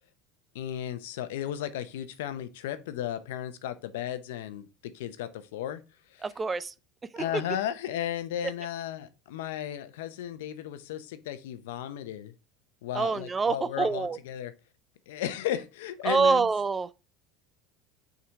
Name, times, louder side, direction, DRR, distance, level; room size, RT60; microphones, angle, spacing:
voice 1, 0.5-5.8 6.1-6.3 7.2-12.3 12.8-14.5 15.1-16.5, left 11 dB, 80° left, 0.7 m, -35 dB
voice 2, 6.2-6.7 7.1-7.4 12.9-14.2 16.0-16.9, right 4 dB, 20° right, 0.5 m, -26 dB
5.8 x 3.9 x 4.5 m
hypercardioid pair, 90°, 0 cm